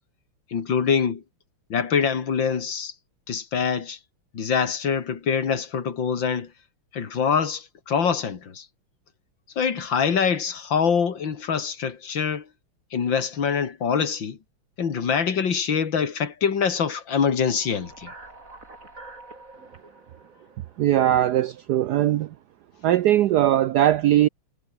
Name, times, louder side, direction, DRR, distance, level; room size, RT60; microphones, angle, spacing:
voice 1, 0.5-1.2 1.7-2.9 3.3-4.0 4.3-6.5 6.9-8.7 9.6-12.5 12.9-14.4 14.8-18.1, left 6 dB, 60° left, 2.9 m, -24 dB
sound 1, 17.3-21.6, right 2 dB, 35° right, 5.0 m, -47 dB
voice 2, 20.8-22.3 22.8-24.3, right 12 dB, 90° right, 0.9 m, -20 dB
omnidirectional pair, 2.4 m